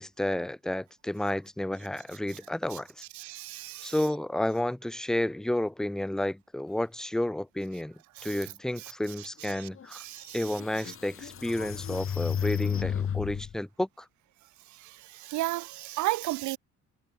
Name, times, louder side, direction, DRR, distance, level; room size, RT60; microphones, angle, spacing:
voice 1, 0.0-3.0 3.8-10.0 10.3-13.9, left 1 dB, ahead, 0.5 m, -31 dB
voice 2, 3.2-3.9 8.2-8.3 9.6-10.4 15.2-16.6, right 18 dB, 75° right, 0.5 m, -33 dB
sound 1, 9.8-9.9 10.4-13.5, left 8 dB, 45° left, 1.3 m, -32 dB
cardioid pair, 90°, 30 cm